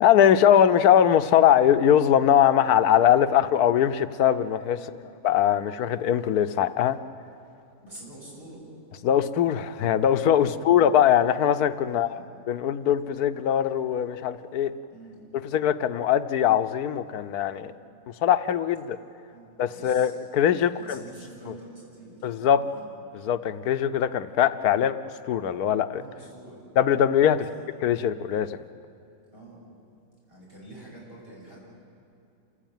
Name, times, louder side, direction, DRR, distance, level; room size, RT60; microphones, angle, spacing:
voice 1, 0.0-4.8 5.2-7.0 9.0-12.2 12.5-14.7 15.5-17.7 18.2-19.0 19.6-21.0 22.2-22.6 23.2-25.0 25.3-26.0 26.8-27.4 27.8-28.6, left 9 dB, 85° left, 12 dB, 1.2 m, -21 dB
voice 2, 7.8-8.6 10.4-10.9 11.9-12.3 14.9-15.3 17.6-17.8 19.3-20.1 20.7-22.3 22.6-22.9 24.7-24.8 25.9-26.6 27.4-27.5 29.3-29.6 30.3-31.6, right 2 dB, 40° right, -5 dB, 7.3 m, -46 dB
28.0 x 15.0 x 9.1 m, 2.7 s
omnidirectional pair, 1.6 m